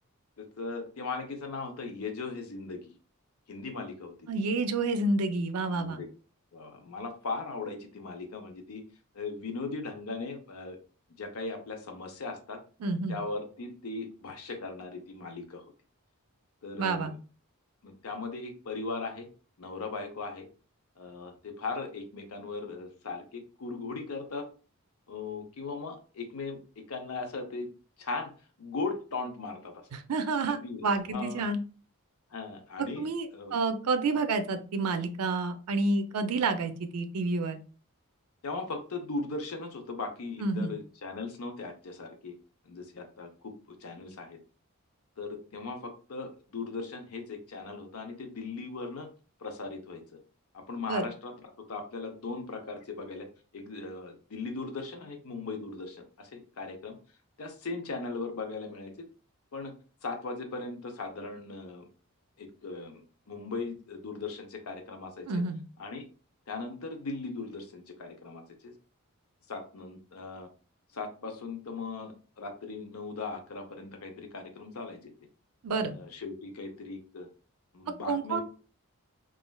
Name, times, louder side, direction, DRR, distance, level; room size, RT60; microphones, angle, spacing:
voice 1, 0.4-2.9 3.5-4.2 5.7-6.1 6.5-8.8 9.1-10.8 11.2-12.6 13.1-15.6 16.6-17.1 17.8-19.3 19.6-20.5 21.0-24.5 25.1-27.7 28.0-28.3 28.6-29.8 30.5-31.5 32.3-33.5 38.4-42.4 42.6-43.5 43.8-44.4 45.2-49.1 49.4-50.0 50.5-51.3 51.7-53.3 53.5-57.0 57.4-59.1 59.5-59.7 60.0-61.9 62.4-65.4 65.8-66.0 66.5-68.7 69.5-70.5 70.9-75.1 75.9-77.3 77.7-78.4, left 3 dB, 75° left, 5 dB, 0.6 m, -38 dB
voice 2, 4.3-6.0 12.8-13.2 16.8-17.1 29.9-31.6 33.0-37.6 40.4-40.7 50.9-51.1 65.3-65.6 75.6-75.9 78.1-78.4, right 3 dB, 85° right, 9 dB, 0.4 m, -29 dB
3.1 x 2.4 x 2.2 m, 0.36 s
head